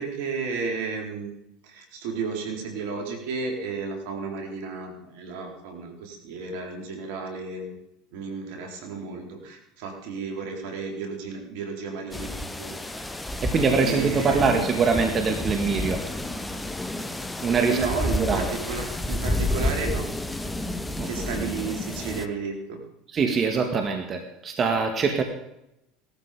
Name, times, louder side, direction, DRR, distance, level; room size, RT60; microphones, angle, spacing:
voice 1, 0.0-1.3 1.6-7.8 8.1-13.3 13.8-14.7 17.6-20.1 21.0-22.8, right 5 dB, 75° right, 3 dB, 4.1 m, -33 dB
sound 1, 12.1-22.3, left 1 dB, 5° left, 1.2 m, -30 dB
voice 2, 13.4-16.0 17.4-17.9 18.2-18.5 21.0-21.1 23.1-25.2, right 4 dB, 35° right, 5 dB, 2.1 m, -23 dB
18.5 x 13.0 x 5.2 m, 0.84 s
hypercardioid pair, 90°, 0 cm